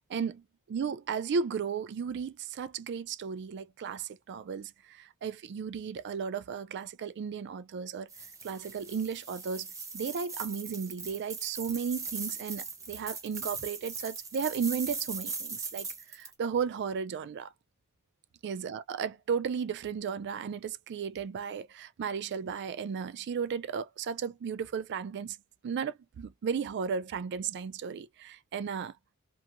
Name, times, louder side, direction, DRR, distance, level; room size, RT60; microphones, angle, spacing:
voice 1, 0.1-0.4 0.7-8.1 8.4-9.7 9.9-17.5 18.4-25.4 25.6-28.9, right 6 dB, 50° right, 0.3 m, -34 dB
sound 1, 8.1-16.3, right 4 dB, 15° right, 0.7 m, -40 dB
2.9 x 2.6 x 2.4 m
head